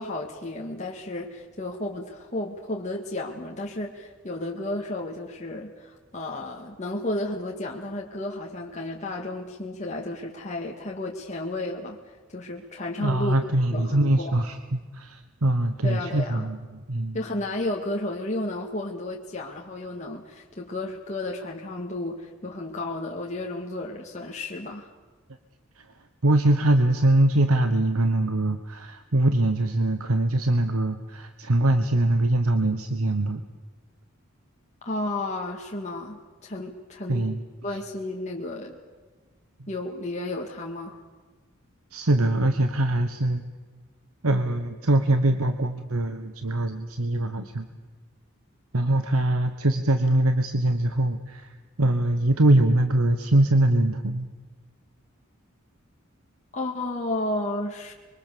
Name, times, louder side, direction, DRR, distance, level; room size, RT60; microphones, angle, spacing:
voice 1, 0.0-13.3 13.7-14.4 15.8-16.5 17.1-24.9 34.8-37.3 37.6-38.8 39.7-41.0 56.5-57.9, left 2 dB, 35° left, -1 dB, 1.9 m, -32 dB
voice 2, 13.0-17.2 25.8-25.9 26.2-33.4 37.1-37.4 37.7-37.8 39.6-39.7 41.9-43.4 44.2-47.7 48.7-54.3, right 1 dB, 85° right, 8 dB, 1.2 m, -23 dB
25.0 x 23.5 x 7.0 m, 1.3 s
head